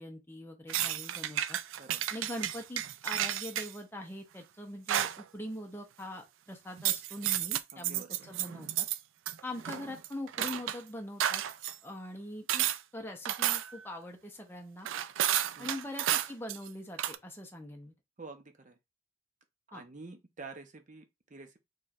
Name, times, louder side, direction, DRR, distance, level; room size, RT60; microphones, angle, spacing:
voice 1, 0.0-1.6 2.1-8.9 9.4-11.4 11.8-12.7 12.9-14.9 15.6-17.9 19.7-19.8, left 1 dB, 10° left, 0.7 m, -43 dB
sound 1, 0.7-3.7 4.9-5.2 6.8-9.0 9.3-10.8 11.2-11.7 12.5-12.8 13.3-13.8 14.9-16.7 17.0-17.2, right 11 dB, 65° right, 0.3 m, -32 dB
voice 2, 7.7-8.3 15.6-15.7 18.2-18.8 19.7-21.6, right 3 dB, 35° right, 0.7 m, -48 dB
4.4 x 3.2 x 2.4 m
head